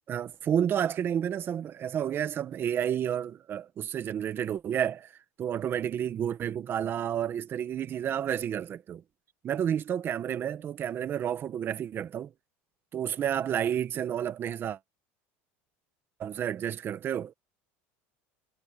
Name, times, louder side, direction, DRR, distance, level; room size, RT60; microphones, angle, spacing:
voice 1, 0.1-5.1 5.4-9.0 9.4-12.3 12.9-14.8 16.2-17.3, right 9 dB, 35° right, 1.6 m, -30 dB
supercardioid pair, 130°, 6 cm